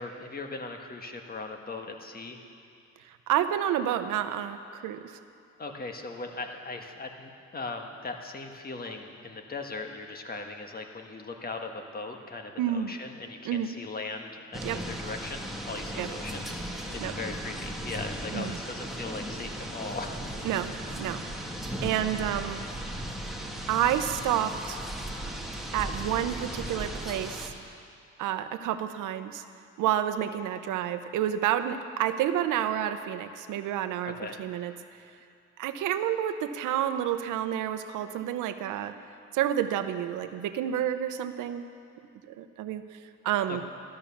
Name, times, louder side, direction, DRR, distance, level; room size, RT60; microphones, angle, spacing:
voice 1, 0.0-2.4 5.6-20.5 34.0-34.4 43.5-43.6, left 3 dB, 30° left, 3 dB, 1.6 m, -39 dB
voice 2, 3.3-5.1 12.6-12.9 13.5-13.7 14.6-14.8 16.0-16.1 17.0-17.1 18.3-18.5 20.4-21.2 21.8-22.6 23.7-24.8 25.7-27.5 28.2-29.4 29.8-34.7 35.6-38.9 39.3-41.7 42.3-42.8 43.2-43.6, right 11 dB, 90° right, 10 dB, 0.8 m, -29 dB
sound 1, 14.5-27.5, right 1 dB, ahead, 1.8 m, -36 dB
13.5 x 11.5 x 7.2 m, 2.4 s
cardioid pair, 90°, 30 cm